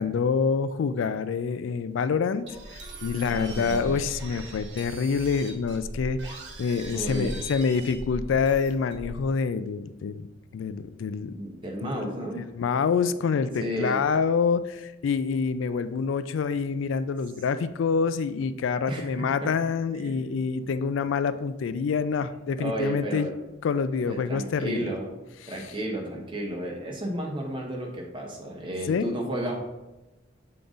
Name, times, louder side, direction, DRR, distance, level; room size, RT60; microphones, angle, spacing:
voice 1, 0.0-2.5 2.7-10.3 10.5-11.4 11.8-23.3 23.6-24.9 25.4-25.5 28.9-29.1, left 5 dB, 85° left, 13 dB, 0.3 m, -27 dB
sound 1, 2.5-9.3, right 1 dB, 65° right, 1.2 m, -39 dB
voice 2, 3.3-4.0 6.9-7.3 11.3-12.5 13.6-14.0 18.9-19.5 19.9-20.5 22.3-23.3 24.1-25.1 25.5-29.6, right 1 dB, 25° right, -1 dB, 1.1 m, -33 dB
6.9 x 3.8 x 3.8 m, 1.0 s
head